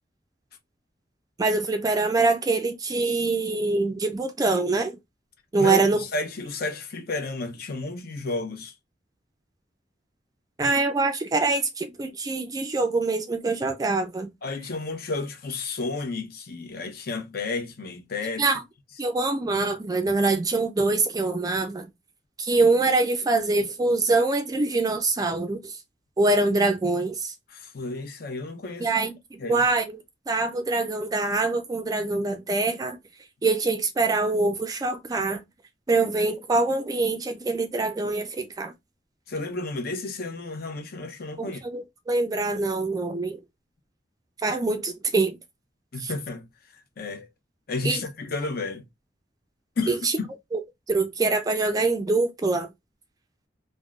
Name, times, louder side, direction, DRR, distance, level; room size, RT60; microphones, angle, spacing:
voice 1, 1.4-5.0 5.5-6.0 10.6-14.3 18.4-18.6 19.0-21.9 22.4-25.8 26.2-27.3 28.8-30.0 30.3-33.0 33.4-35.4 35.9-38.7 41.4-43.4 44.4-45.4 46.0-46.1 47.8-48.0 49.9-50.2 50.5-50.6 50.9-52.7, right 3 dB, 20° right, 0.3 m, -24 dB
voice 2, 5.6-8.7 14.4-18.4 27.5-28.9 29.4-29.6 39.3-41.6 45.9-46.5 47.0-47.3 47.7-48.8 49.8-50.3, left 3 dB, 55° left, 0.7 m, -32 dB
3.5 x 2.0 x 2.3 m
head